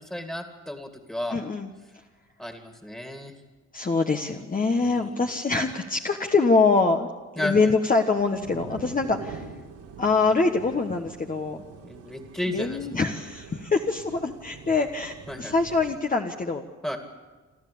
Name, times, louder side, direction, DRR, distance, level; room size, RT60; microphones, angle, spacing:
voice 1, 0.0-1.4 2.4-3.3 4.8-5.2 7.4-7.7 11.8-12.8 15.3-15.5 16.8-17.0, left 1 dB, 5° left, 5 dB, 2.5 m, -33 dB
voice 2, 1.3-1.7 3.7-7.1 7.4-9.5 10.0-11.6 12.5-16.6, left 3 dB, 25° left, 3 dB, 1.4 m, -24 dB
sound 1, 8.1-16.0, right 5 dB, 85° right, 3.9 m, -44 dB
27.0 x 13.5 x 8.7 m, 1.4 s
cardioid pair, 90°, 30 cm